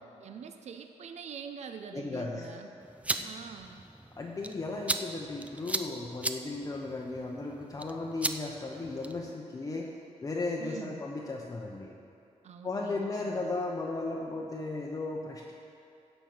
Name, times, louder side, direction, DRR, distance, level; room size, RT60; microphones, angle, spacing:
voice 1, 0.2-2.7 3.2-3.8 10.6-11.0 12.4-13.5, right 7 dB, 65° right, 6 dB, 0.6 m, -45 dB
voice 2, 1.9-2.5 3.2-3.4 4.2-11.9 12.6-15.5, left 3 dB, 30° left, -1 dB, 0.7 m, -36 dB
sound 1, 2.8-9.3, right 2 dB, 10° right, 0.4 m, -38 dB
16.0 x 5.3 x 6.0 m, 2.6 s
wide cardioid pair, 140°, 12 cm